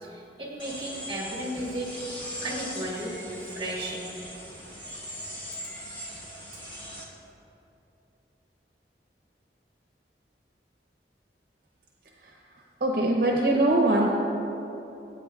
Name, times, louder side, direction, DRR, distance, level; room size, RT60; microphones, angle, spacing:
voice 1, 0.0-1.9 2.4-4.1, right 1 dB, 25° right, -2 dB, 1.6 m, -34 dB
sound 1, 0.6-7.0, equal, 25° left, 1.4 m, -40 dB
voice 2, 12.8-14.1, right 2 dB, 55° right, -1 dB, 0.7 m, -22 dB
15.5 x 8.6 x 2.4 m, 2.9 s
head